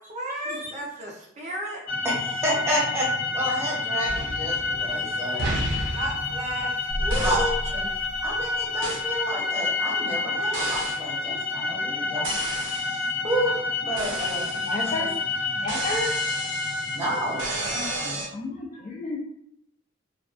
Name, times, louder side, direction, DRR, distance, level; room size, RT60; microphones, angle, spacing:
voice 1, 0.1-1.8 5.3-7.6, equal, 35° right, -2 dB, 0.4 m, -33 dB
sound 1, 1.9-18.1, left 3 dB, 85° left, 0.9 m, -29 dB
voice 2, 2.0-5.5 7.2-7.8 8.2-12.3 12.6-14.5 14.8-15.1 16.9-17.4 17.7-18.2, equal, 15° right, -6 dB, 0.8 m, -30 dB
sound 2, 4.0-5.0 5.4-6.7 7.1-7.6 8.8-9.1 10.5-11.1 12.2-13.0 14.0-15.1 15.7-18.3, right 2 dB, 85° right, 0.5 m, -33 dB
sound 3, 6.9-9.2, equal, 50° left, 0.8 m, -32 dB
voice 3, 14.6-15.1 15.6-16.1 17.8-19.2, left 2 dB, 35° left, -1 dB, 0.4 m, -32 dB
2.4 x 2.2 x 2.3 m, 0.71 s
head